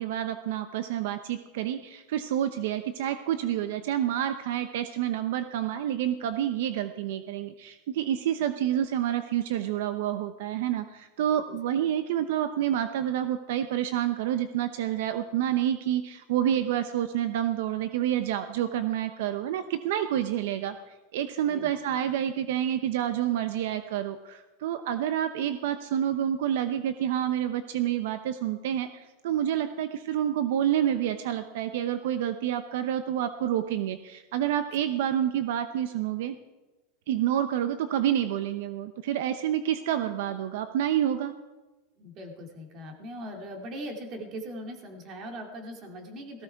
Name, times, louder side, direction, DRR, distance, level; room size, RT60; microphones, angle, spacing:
voice 1, 0.0-36.4 37.1-41.3, right 10 dB, 70° right, 10 dB, 0.8 m, -28 dB
voice 2, 42.0-46.4, equal, 35° right, 2 dB, 2.8 m, -40 dB
18.0 x 15.0 x 4.7 m, 1.1 s
supercardioid pair, 165°, 0 cm